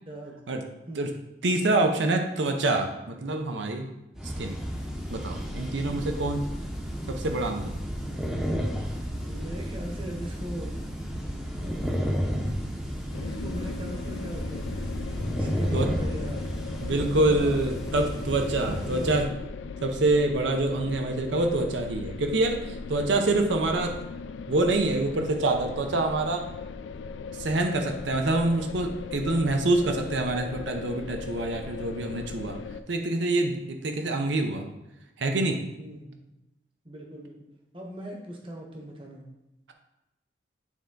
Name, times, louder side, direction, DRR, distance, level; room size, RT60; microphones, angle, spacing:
voice 1, 0.1-1.1 9.2-10.8 11.6-12.0 13.1-14.9 15.4-16.5 16.9-17.6 18.7-19.2 35.8-36.1 36.8-37.4 37.7-39.3, right 1 dB, 30° right, 0 dB, 0.9 m, -40 dB
voice 2, 1.4-3.9 4.2-4.6 5.1-6.5 7.1-7.7 15.7-15.9 16.8-19.3 19.8-24.0 24.5-26.5 27.4-32.6 32.9-34.7 35.2-35.6, right 2 dB, 85° right, 4 dB, 0.6 m, -26 dB
sound 1, 4.2-19.2, equal, 5° right, 0.6 m, -32 dB
sound 2, 13.1-32.8, left 5 dB, 80° left, 0.3 m, -38 dB
9.0 x 3.3 x 3.8 m, 0.93 s
head